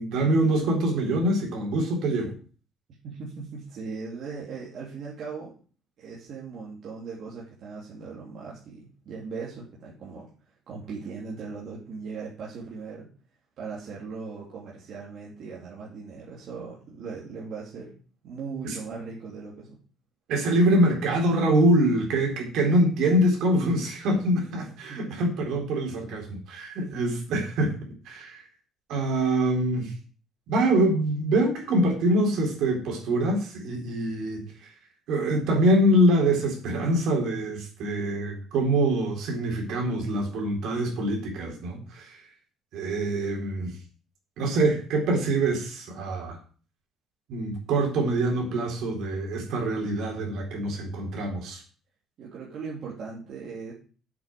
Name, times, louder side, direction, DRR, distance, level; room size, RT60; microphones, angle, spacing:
voice 1, 0.0-2.4 18.6-18.8 20.3-27.7 28.0-28.5 28.9-29.9 30.5-34.7 35.1-42.3 42.7-43.8 44.4-46.4 47.3-51.6, right 1 dB, 65° right, 1 dB, 4.0 m, -24 dB
voice 2, 3.0-5.5 6.0-10.3 10.7-13.1 13.6-17.9 18.2-19.8 24.5-24.6 24.9-25.0 26.8-27.0 52.2-53.7, right 5 dB, 45° right, -5 dB, 2.9 m, -38 dB
8.1 x 6.9 x 7.6 m, 0.40 s
cardioid pair, 175°, 0 cm